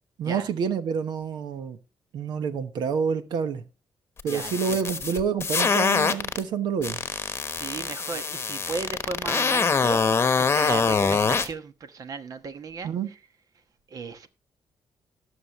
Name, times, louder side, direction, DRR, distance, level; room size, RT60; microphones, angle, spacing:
voice 1, 0.2-1.8 2.1-3.6 4.2-7.0 12.8-13.1, right 6 dB, 85° right, 1.1 m, -28 dB
sound 1, 4.2-6.4 6.8-11.5, left 5 dB, 35° left, 1.0 m, -24 dB
voice 2, 4.2-4.9 7.5-10.0 10.3-12.9 13.9-14.3, right 5 dB, 55° right, 1.2 m, -35 dB
19.0 x 6.4 x 3.0 m
cardioid pair, 95°, 7 cm